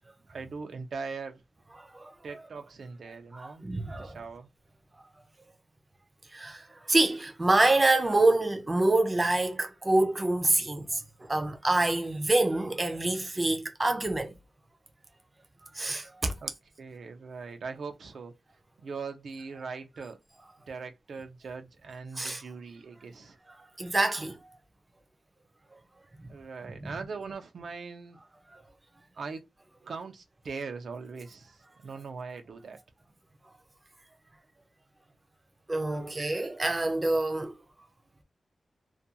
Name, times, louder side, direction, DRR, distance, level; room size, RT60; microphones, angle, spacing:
voice 1, 0.3-1.4 2.2-4.5 16.4-16.5 16.8-18.4 18.8-20.2 20.7-23.4 26.3-28.2 29.1-29.4 29.8-32.8, right 4 dB, 90° right, 0.5 m, -41 dB
voice 2, 3.3-4.2 6.3-14.3 15.7-16.3 22.2-22.4 23.8-24.4 26.8-26.9 35.7-37.6, right 2 dB, 20° right, 0.4 m, -26 dB
2.4 x 2.2 x 2.7 m
wide cardioid pair, 170°, 0 cm